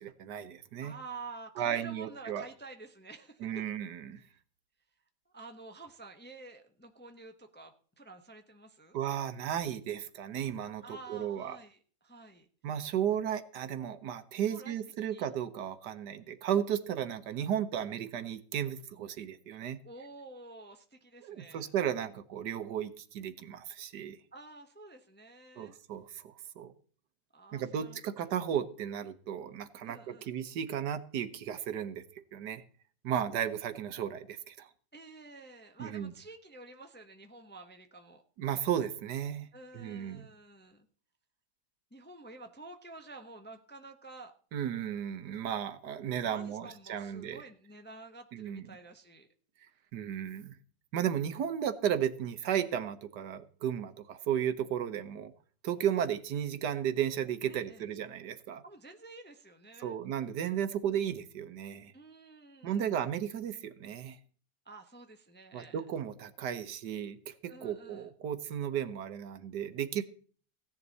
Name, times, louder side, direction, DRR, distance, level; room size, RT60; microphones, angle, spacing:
voice 1, 0.0-0.9 1.6-2.4 3.4-4.2 8.9-11.6 12.6-19.8 21.2-24.2 25.6-26.7 27.5-32.6 33.0-34.7 35.8-36.1 38.4-39.5 39.7-40.2 44.5-47.4 48.3-48.6 49.9-50.5 50.9-55.3 55.6-58.6 59.8-61.9 62.6-64.2 65.5-70.0, right 9 dB, 75° right, 12 dB, 1.6 m, -34 dB
voice 2, 0.8-3.6 5.3-9.0 10.8-12.5 14.5-15.3 19.8-21.7 24.3-25.7 27.3-28.0 29.8-30.3 34.9-38.2 39.5-40.9 41.9-44.3 46.2-49.3 57.5-57.8 58.6-60.0 61.9-63.0 64.6-65.9 67.5-68.1, right 3 dB, 10° left, 5 dB, 0.7 m, -50 dB
16.0 x 10.5 x 4.1 m, 0.44 s
omnidirectional pair, 1.8 m